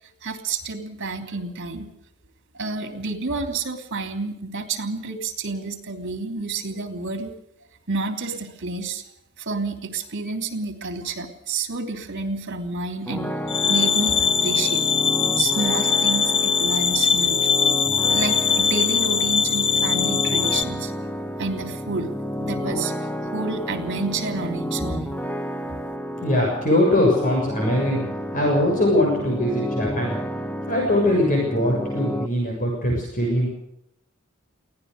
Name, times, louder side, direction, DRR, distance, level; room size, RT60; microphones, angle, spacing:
voice 1, 0.2-1.9 2.6-7.3 7.9-9.0 9.4-13.3 13.7-14.8 15.4-17.5 18.1-20.9 21.4-22.1 22.4-22.9 23.3-25.1, right 3 dB, 60° right, 7 dB, 3.2 m, -29 dB
sound 1, 13.1-32.3, equal, 5° left, 1.1 m, -31 dB
sound 2, 13.5-20.6, left 6 dB, 60° left, 1.2 m, -21 dB
voice 2, 26.2-28.0 28.3-30.1 30.7-33.6, left 1 dB, 40° left, 0 dB, 7.1 m, -21 dB
23.5 x 17.0 x 6.8 m, 0.76 s
head